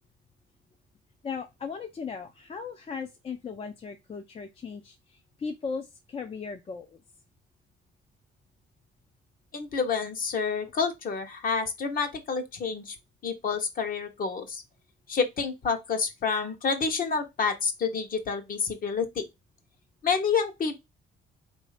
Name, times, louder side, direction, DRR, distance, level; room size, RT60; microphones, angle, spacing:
voice 1, 1.2-7.0, left 5 dB, 30° left, 0.4 m, -37 dB
voice 2, 9.5-12.9 13.2-14.6 15.1-19.2 20.0-20.7, left 5 dB, 45° left, 0.9 m, -28 dB
4.2 x 2.7 x 4.7 m
cardioid pair, 160°, 20 cm